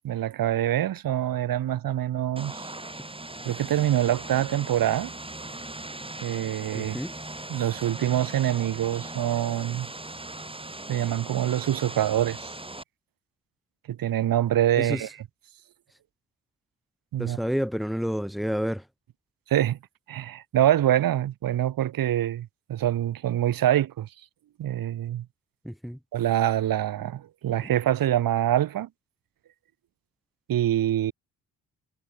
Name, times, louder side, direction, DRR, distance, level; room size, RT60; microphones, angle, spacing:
voice 1, 0.0-2.7 3.4-5.1 6.2-7.0 7.5-9.9 10.9-12.5 13.9-15.1 17.1-17.4 19.5-19.8 20.1-24.1 24.6-25.2 26.1-28.9 30.5-31.1, right 12 dB, 75° right, 2.8 m, -25 dB
Vehicle, 2.4-12.8, right 2 dB, 15° right, 7.4 m, -39 dB
voice 2, 6.7-7.1 14.8-15.1 17.2-18.8 25.6-26.0 27.6-27.7, equal, ahead, 7.4 m, -29 dB
supercardioid pair, 65°, 35 cm